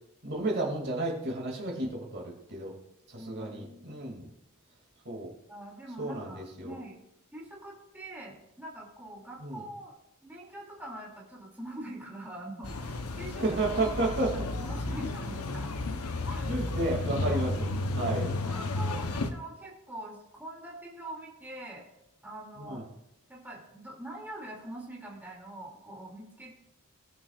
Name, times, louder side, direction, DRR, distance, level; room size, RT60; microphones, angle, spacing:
voice 1, 0.2-2.7 3.1-4.3 5.0-5.3 6.0-6.8 9.4-9.6 13.4-14.3 16.5-18.3 22.6-22.8, right 2 dB, 50° right, -1 dB, 2.5 m, -32 dB
voice 2, 3.2-4.0 5.5-7.0 7.3-9.9 10.2-13.6 14.1-15.7 16.2-16.7 18.0-18.1 18.4-21.8 22.2-22.8 23.3-26.5, right 1 dB, 10° right, -4 dB, 2.6 m, -44 dB
sound 1, 12.6-19.3, left 2 dB, 90° left, 0.9 m, -32 dB
20.5 x 7.4 x 2.4 m, 0.86 s
head